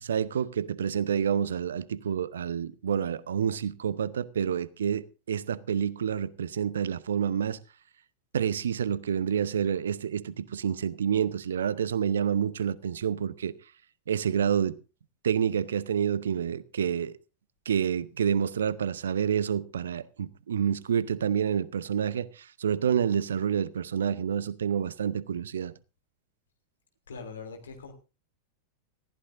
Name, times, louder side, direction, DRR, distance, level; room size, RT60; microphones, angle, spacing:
voice 1, 0.0-7.6 8.3-13.5 14.1-14.8 15.2-17.2 17.7-25.7, right 8 dB, 65° right, 0.8 m, -28 dB
voice 2, 27.1-27.9, left 4 dB, 70° left, 3.0 m, -41 dB
19.5 x 15.0 x 2.6 m
figure-of-eight pair, 90°, 0 cm